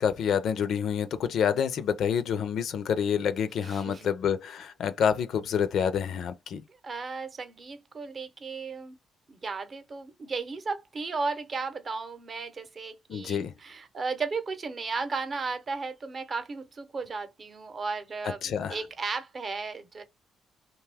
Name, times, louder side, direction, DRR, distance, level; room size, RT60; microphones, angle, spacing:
voice 1, 0.0-6.6 13.1-13.5 18.4-18.8, left 7 dB, 70° left, 0.4 m, -28 dB
voice 2, 3.6-4.1 6.8-9.0 9.3-20.0, right 4 dB, 40° right, 0.7 m, -35 dB
2.7 x 2.3 x 3.4 m
cardioid pair, 90°, 0 cm